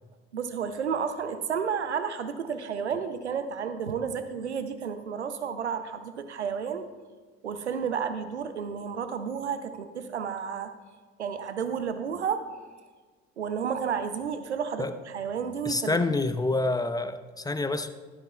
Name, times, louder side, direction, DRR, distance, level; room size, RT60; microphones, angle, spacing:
voice 1, 0.3-6.9 7.4-10.7 11.2-12.5 13.4-16.0, right 7 dB, 90° right, 10 dB, 0.6 m, -31 dB
voice 2, 15.7-17.9, left 2 dB, 10° left, 10 dB, 0.7 m, -27 dB
12.5 x 11.0 x 2.3 m, 1.4 s
figure-of-eight pair, 55°, 33 cm